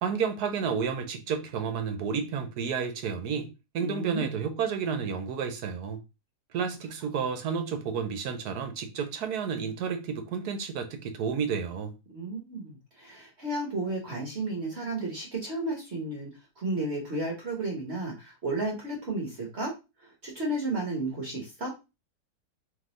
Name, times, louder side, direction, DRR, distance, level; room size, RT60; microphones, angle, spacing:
voice 1, 0.0-6.0 6.5-11.9, right 6 dB, 70° right, 1.2 m, -31 dB
voice 2, 3.8-4.3 12.1-19.7 20.0-21.7, right 2 dB, 45° right, 1.3 m, -33 dB
3.8 x 3.0 x 3.8 m
omnidirectional pair, 1.8 m